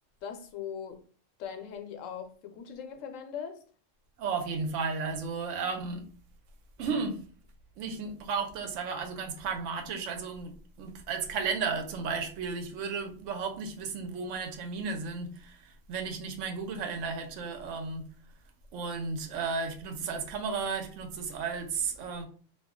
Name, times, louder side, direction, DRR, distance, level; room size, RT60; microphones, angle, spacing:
voice 1, 0.2-1.0 1.4-3.6, left 7 dB, 85° left, 1.0 m, -40 dB
voice 2, 4.2-6.1 6.8-7.2 7.8-18.1 18.7-22.2, right 5 dB, 75° right, 0.9 m, -34 dB
2.3 x 2.2 x 3.5 m
omnidirectional pair, 1.3 m